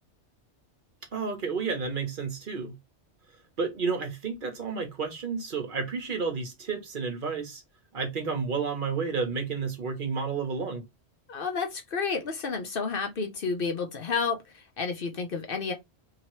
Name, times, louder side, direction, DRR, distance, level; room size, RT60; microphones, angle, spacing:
voice 1, 1.1-2.7 3.6-7.6 7.9-10.8, right 5 dB, 50° right, 0.9 m, -31 dB
voice 2, 11.3-15.7, left 5 dB, 55° left, 0.8 m, -31 dB
2.9 x 2.8 x 2.9 m
omnidirectional pair, 1.2 m